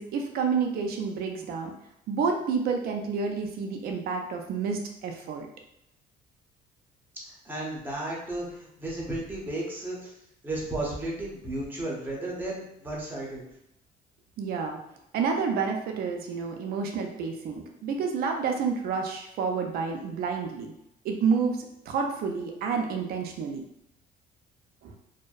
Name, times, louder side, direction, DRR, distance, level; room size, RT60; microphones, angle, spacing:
voice 1, 0.0-1.7 2.1-5.5 14.4-14.8 15.1-20.7 21.0-21.6 21.9-23.6 24.8-24.9, right 5 dB, 65° right, 3 dB, 0.4 m, -29 dB
voice 2, 7.4-10.1 10.4-13.4, right 1 dB, 10° right, -4 dB, 0.7 m, -34 dB
2.6 x 2.1 x 2.3 m, 0.80 s
cardioid pair, 110°, 17 cm